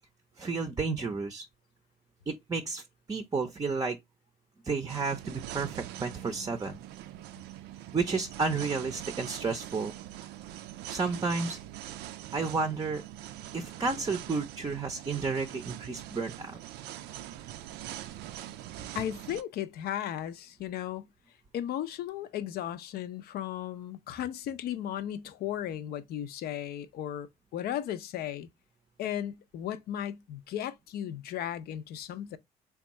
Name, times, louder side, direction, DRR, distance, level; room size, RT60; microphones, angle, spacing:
voice 1, 0.4-1.5 2.3-2.8 3.1-4.0 4.6-6.8 7.9-9.9 10.9-11.6 12.3-13.0 13.5-16.6, right 4 dB, 20° right, 0.5 m, -31 dB
sound 1, 4.9-19.4, right 13 dB, 85° right, 0.4 m, -43 dB
voice 2, 18.9-21.1 21.5-27.3 27.5-28.5 29.0-32.4, left 11 dB, 65° left, 0.5 m, -35 dB
3.5 x 2.3 x 4.1 m
cardioid pair, 110°, 17 cm